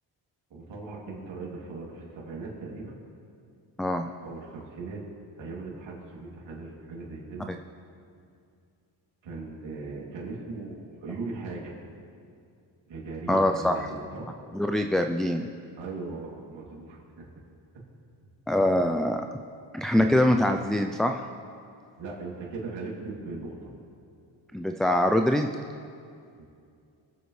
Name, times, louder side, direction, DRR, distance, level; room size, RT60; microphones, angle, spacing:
voice 1, 0.5-3.0 4.2-5.0 5.4-7.5 9.2-11.7 12.9-14.3 15.8-17.3 19.9-20.2 22.0-23.7 26.4-26.5, right 3 dB, 75° right, -4 dB, 3.0 m, -39 dB
voice 2, 3.8-4.1 13.3-13.8 14.5-15.5 18.5-19.3 19.7-21.2 24.5-25.5, left 1 dB, ahead, 5 dB, 0.4 m, -24 dB
24.0 x 8.0 x 3.3 m, 2.4 s
cardioid pair, 95°, 45 cm